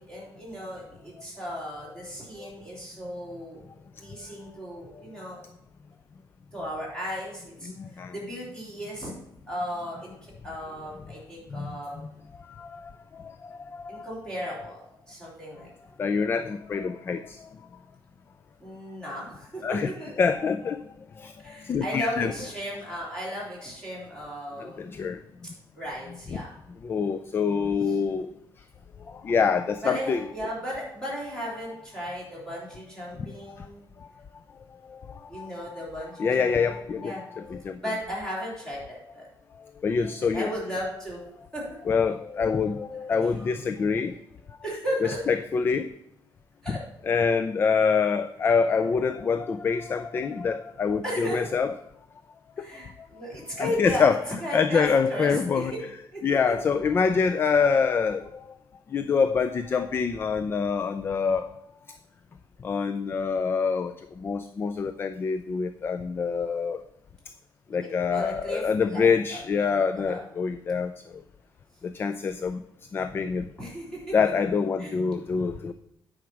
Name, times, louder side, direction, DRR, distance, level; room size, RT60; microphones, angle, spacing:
voice 1, 0.1-3.6 4.0-5.4 6.5-7.7 8.1-9.1 9.5-12.0 13.9-15.7 18.6-20.1 21.4-24.8 25.7-26.5 27.9-28.0 29.8-33.9 35.3-37.2 37.8-39.3 40.3-41.2 41.5-41.7 43.2-43.5 44.6-45.2 46.6-46.8 51.0-51.4 52.6-54.1 54.4-55.8 56.1-56.6 67.7-69.7 69.9-70.2 73.6-74.1 74.8-75.0, equal, 10° left, -6 dB, 3.5 m, -35 dB
voice 2, 7.7-8.1 11.5-11.7 12.0-12.1 12.5-12.9 13.2-14.1 14.6-14.7 16.0-17.4 19.6-19.9 20.2-20.8 21.2-22.3 24.6-25.2 26.3-26.4 26.8-28.3 29.1-30.3 33.6-33.7 34.9-35.8 36.2-37.8 39.8-40.5 41.9-44.1 45.3-45.9 47.1-51.7 52.6-52.7 53.6-54.2 54.5-55.7 56.2-58.4 58.9-61.5 62.6-66.8 67.7-70.9 71.8-72.6 72.9-73.5 74.1-75.7, left 5 dB, 25° left, 11 dB, 0.3 m, -26 dB
9.3 x 5.0 x 5.9 m, 0.78 s
cardioid pair, 175°, 8 cm